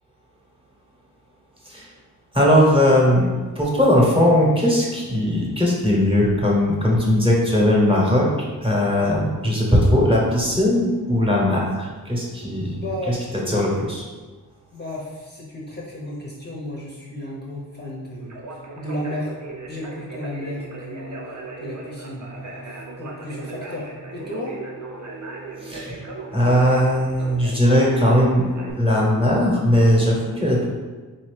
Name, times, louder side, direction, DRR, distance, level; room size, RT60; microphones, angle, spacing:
voice 1, 2.3-3.3 3.5-8.3 8.6-13.2 13.5-14.0 25.6-26.0 26.3-28.4 28.8-30.7, left 1 dB, 15° right, -3 dB, 1.0 m, -19 dB
voice 2, 12.7-13.9 14.7-19.3 19.7-24.6, left 1 dB, 25° left, -5 dB, 0.7 m, -33 dB
Conversation, 18.2-28.7, right 3 dB, 50° right, 0.7 m, -37 dB
4.0 x 2.7 x 3.2 m, 1.4 s
wide cardioid pair, 70°, 38 cm